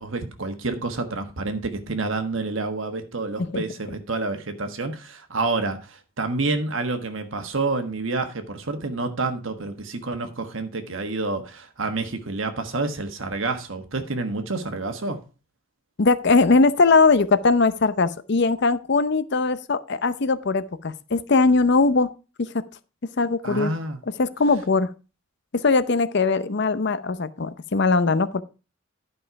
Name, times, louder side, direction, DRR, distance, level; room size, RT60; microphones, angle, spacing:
voice 1, 0.0-15.2 23.4-24.0, right 3 dB, 70° right, 1.4 m, -28 dB
voice 2, 16.0-22.1 22.4-22.5 23.2-23.7 24.2-24.9 25.5-28.4, left 3 dB, 55° left, 0.6 m, -20 dB
11.0 x 5.5 x 4.7 m
head